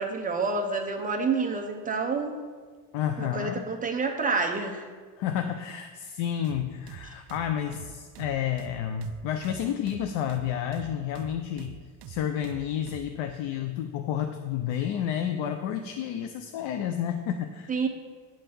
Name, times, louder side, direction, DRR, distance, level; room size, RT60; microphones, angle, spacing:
voice 1, 0.0-2.4 3.2-4.8 17.7-17.9, right 4 dB, 20° right, 3 dB, 0.5 m, -28 dB
voice 2, 2.9-3.7 5.2-11.7 12.1-17.7, left 9 dB, 85° left, 6 dB, 0.7 m, -30 dB
sound 1, 6.4-13.2, right 10 dB, 65° right, 0.6 m, -45 dB
9.5 x 3.9 x 6.8 m, 1.5 s
cardioid pair, 180°, 44 cm